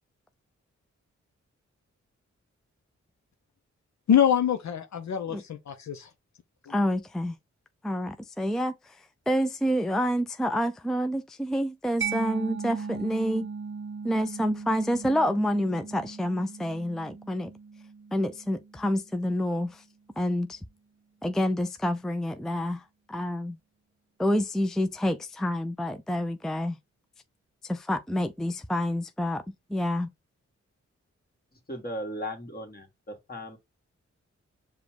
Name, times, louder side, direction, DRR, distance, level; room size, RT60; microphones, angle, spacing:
voice 1, 4.1-6.1, left 9 dB, 70° left, 0.6 m, -24 dB
voice 2, 6.7-7.4 7.8-9.0 9.3-13.5 14.0-17.5 18.1-19.8 20.2-20.6 21.2-23.6 24.2-26.8 27.6-29.4 29.7-30.1, equal, ahead, 0.4 m, -28 dB
Mallet percussion, 12.0-19.4, right 5 dB, 40° right, 0.8 m, -38 dB
voice 3, 31.7-33.6, equal, 30° left, 1.8 m, -37 dB
5.0 x 2.3 x 4.5 m
cardioid pair, 50°, 29 cm